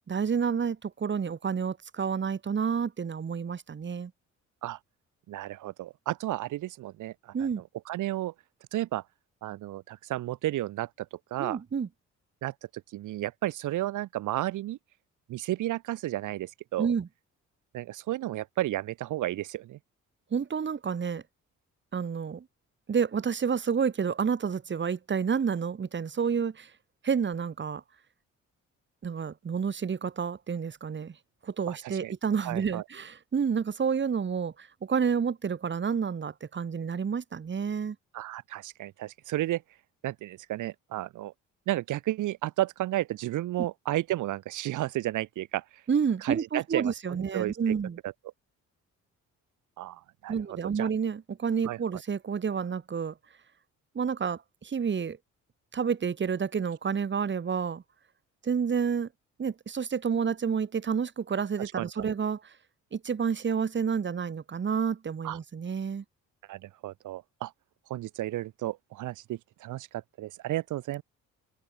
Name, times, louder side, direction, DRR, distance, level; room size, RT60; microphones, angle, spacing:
voice 1, 0.1-4.1 7.3-7.6 11.4-11.9 16.8-17.1 20.3-21.2 21.9-22.5 22.9-26.7 27.0-27.8 29.0-31.1 31.4-38.0 45.9-48.0 50.3-53.1 54.0-55.2 55.7-57.8 58.4-59.1 59.4-62.5 62.9-66.0, right 6 dB, 40° right, 2.1 m, -29 dB
voice 2, 5.3-7.1 7.4-7.5 7.9-8.3 8.7-9.0 9.4-10.9 11.3-11.6 12.4-12.5 12.9-14.8 15.3-16.9 17.7-19.8 31.7-31.8 32.0-32.1 32.4-32.8 38.1-39.6 40.0-41.3 41.7-45.6 46.2-47.7 49.8-50.3 50.8-50.9 51.6-51.8 61.8-62.1 65.2-65.4 66.5-67.5 67.9-69.9 70.2-71.0, right 15 dB, 85° right, 1.8 m, -32 dB
open air
cardioid pair, 90°, 30 cm